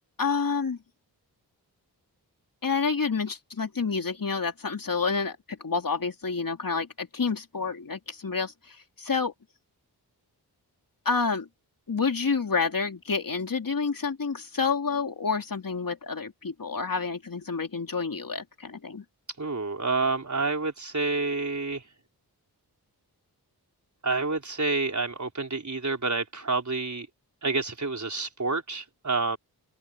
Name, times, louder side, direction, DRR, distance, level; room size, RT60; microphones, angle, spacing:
voice 1, 0.2-0.8 2.6-9.3 11.0-11.5 11.9-19.0, left 5 dB, 55° left, 3.1 m, -29 dB
voice 2, 19.4-21.8 24.0-27.1 27.4-29.4, right 3 dB, 45° right, 4.6 m, -28 dB
open air
cardioid pair, 55°, 39 cm